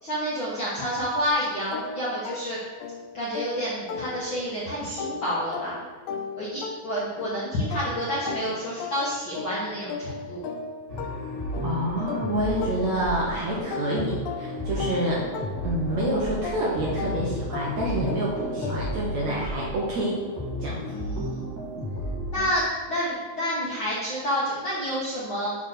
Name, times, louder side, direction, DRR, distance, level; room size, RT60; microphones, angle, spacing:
voice 1, 0.0-2.6 3.1-5.8 6.3-10.4 20.9-21.4 22.3-25.6, equal, 55° left, -8 dB, 1.4 m, -29 dB
sound 1, 1.7-4.6 5.0-13.3 13.7-19.1, left 5 dB, 75° left, 2.2 m, -37 dB
sound 2, 10.9-22.4, equal, 35° right, 1.6 m, -33 dB
voice 2, 11.6-15.3 15.6-20.2 20.6-20.8, right 1 dB, 65° right, -4 dB, 1.9 m, -27 dB
7.3 x 4.4 x 6.4 m, 1.4 s
omnidirectional pair, 4.4 m